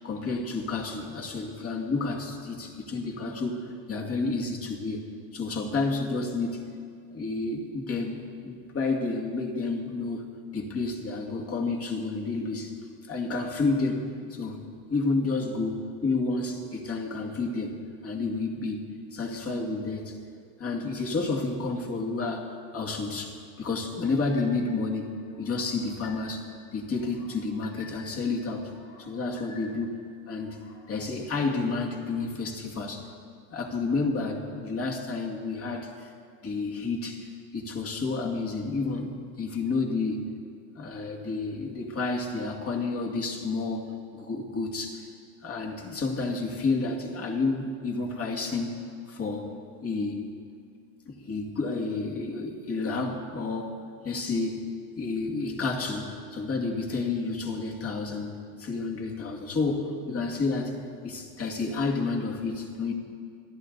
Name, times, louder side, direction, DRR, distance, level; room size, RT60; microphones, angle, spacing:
voice 1, 0.0-5.0 5.3-6.7 7.1-10.3 10.5-12.7 13.1-14.0 14.3-14.6 14.9-17.8 18.0-18.8 19.1-20.2 20.6-28.7 29.0-30.0 30.3-30.6 30.9-33.1 33.5-36.1 36.4-40.3 40.8-45.1 45.4-48.8 49.1-49.5 49.8-50.2 51.1-54.7 55.0-60.8 61.0-62.9, left 3 dB, 30° left, 0 dB, 2.4 m, -30 dB
sound 1, 24.2-24.8 25.3-26.5 26.9-28.2 28.6-30.0 30.4-30.9, left 4 dB, 60° left, 3.8 m, -51 dB
28.5 x 11.0 x 4.1 m, 2.2 s
supercardioid pair, 115°, 49 cm